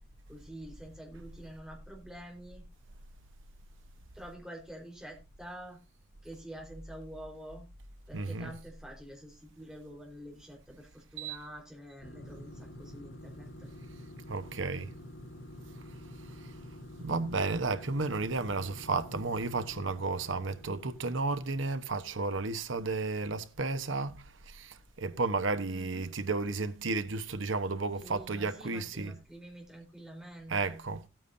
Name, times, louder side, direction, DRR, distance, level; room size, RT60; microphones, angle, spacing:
voice 1, 0.3-2.6 4.1-5.8 6.2-7.7 8.1-13.7 25.7-26.1 28.0-30.8, right 1 dB, 5° right, 4.1 m, -47 dB
voice 2, 8.1-8.5 11.2-11.4 14.3-14.9 16.4-16.5 17.0-29.2 30.5-31.0, right 3 dB, 75° right, 1.1 m, -33 dB
sound 1, 12.0-21.8, left 1 dB, 85° left, 2.0 m, -48 dB
16.5 x 9.1 x 2.7 m
head